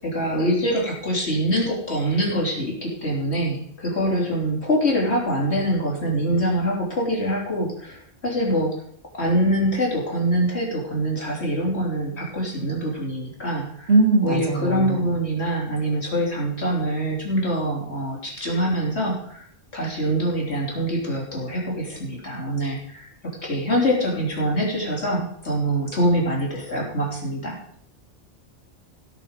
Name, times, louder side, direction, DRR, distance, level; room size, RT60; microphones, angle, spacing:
voice 1, 0.0-8.7 9.1-13.9 14.2-19.5 19.7-23.1 23.4-27.6, equal, 65° left, -2 dB, 3.6 m, -24 dB
voice 2, 13.9-15.1, right 2 dB, 65° right, 1 dB, 2.7 m, -20 dB
16.5 x 6.6 x 5.2 m, 0.65 s
omnidirectional pair, 1.2 m